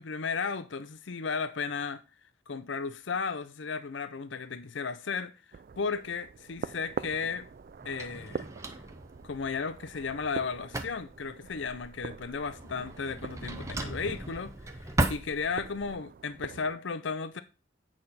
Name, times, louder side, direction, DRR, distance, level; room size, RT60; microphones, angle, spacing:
voice 1, 0.0-2.0 2.5-5.3 5.8-7.5 7.8-8.5 9.2-14.5 15.1-17.4, left 5 dB, 70° left, 0.6 m, -34 dB
sound 1, 5.5-16.8, right 5 dB, 45° right, 0.3 m, -44 dB
Drawer open or close, 6.6-15.9, right 1 dB, 15° right, 0.7 m, -37 dB
8.7 x 6.0 x 4.2 m
head